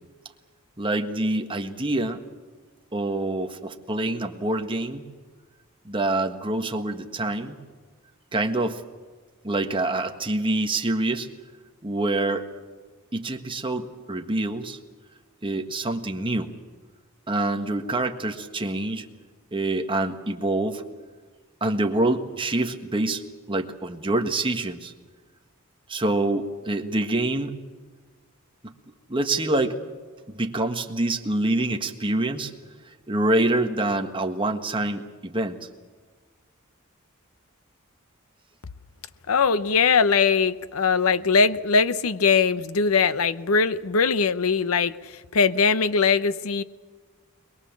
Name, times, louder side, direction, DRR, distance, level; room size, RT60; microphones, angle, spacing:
voice 1, 0.8-2.2 2.9-5.0 5.8-7.6 8.3-8.8 9.4-11.3 11.8-12.5 13.1-14.8 15.4-16.5 17.3-19.1 19.5-20.8 21.6-23.2 23.5-24.9 25.9-27.6 28.6-28.7 29.1-29.8 30.3-32.5 33.1-35.6, right 2 dB, 25° right, 5 dB, 1.5 m, -26 dB
voice 2, 39.3-46.6, left 5 dB, 80° left, 15 dB, 0.8 m, -21 dB
22.5 x 22.5 x 7.3 m, 1.5 s
head